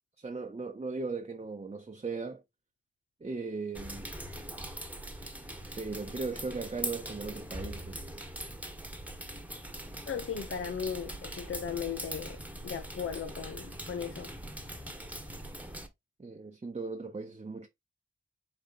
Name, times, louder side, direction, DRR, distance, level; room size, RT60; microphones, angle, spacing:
voice 1, 0.2-2.4 3.2-4.1 5.7-8.1 16.2-17.7, right 4 dB, 30° right, 0.7 m, -38 dB
sound 1, 3.7-15.9, right 1 dB, 5° right, 1.2 m, -42 dB
voice 2, 10.1-14.3, left 7 dB, 85° left, 0.7 m, -37 dB
5.0 x 4.2 x 2.5 m
wide cardioid pair, 60°, 21 cm